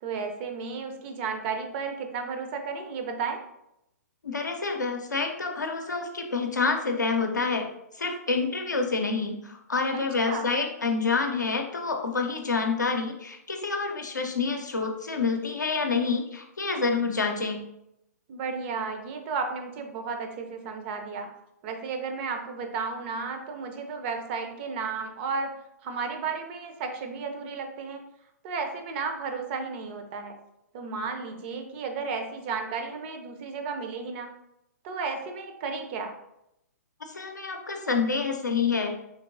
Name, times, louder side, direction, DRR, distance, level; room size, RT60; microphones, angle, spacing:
voice 1, 0.0-3.4 9.9-10.5 18.3-21.3 21.6-25.5 25.8-28.0 28.4-30.3 30.7-34.3 34.8-36.1, right 5 dB, 40° right, 5 dB, 0.5 m, -33 dB
voice 2, 4.2-7.7 8.0-17.6 37.1-38.9, left 4 dB, 90° left, 3 dB, 0.5 m, -28 dB
3.2 x 2.8 x 2.5 m, 0.82 s
figure-of-eight pair, 120°, 9 cm